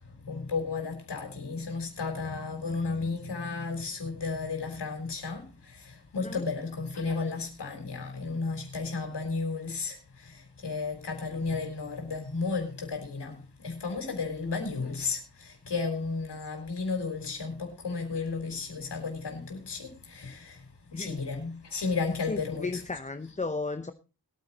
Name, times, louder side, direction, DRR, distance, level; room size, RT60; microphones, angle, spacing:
voice 1, 0.0-22.8, left 4 dB, 85° left, 4.1 m, -33 dB
voice 2, 20.9-21.2 22.3-23.9, left 3 dB, 20° left, 0.7 m, -34 dB
21.5 x 9.5 x 2.9 m
wide cardioid pair, 100°, 40 cm